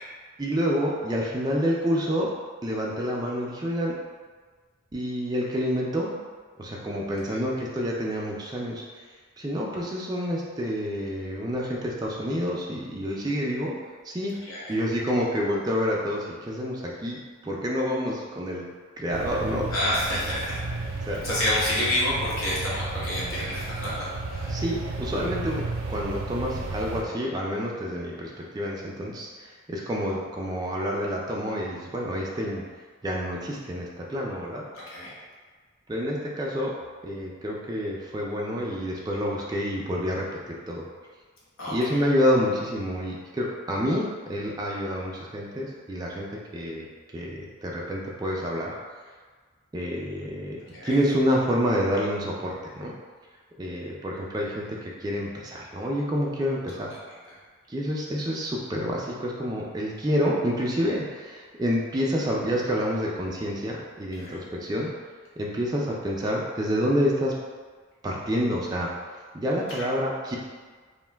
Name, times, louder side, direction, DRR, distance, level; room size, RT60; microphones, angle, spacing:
voice 1, 0.4-2.3 2.6-4.0 4.9-6.1 6.6-8.8 9.4-13.7 14.0-14.3 14.7-18.6 19.0-19.7 21.1-21.2 24.5-25.6 25.9-32.6 33.0-34.6 35.9-36.7 37.0-40.8 41.7-46.9 47.1-48.7 49.7-50.6 50.8-52.9 53.6-56.9 57.7-64.9 65.4-67.3 68.0-68.9 69.3-70.4, equal, 20° right, -3 dB, 0.3 m, -28 dB
voice 2, 14.4-14.8 19.7-24.6 34.7-35.2 41.6-42.0 50.7-51.0 56.7-57.0 57.3-57.4 64.1-64.4 69.7-69.8, left 1 dB, 85° left, -7 dB, 1.0 m, -29 dB
sound 1, 19.1-27.0, right 3 dB, 90° right, 0.4 m, -33 dB
2.5 x 2.2 x 3.3 m, 1.5 s
head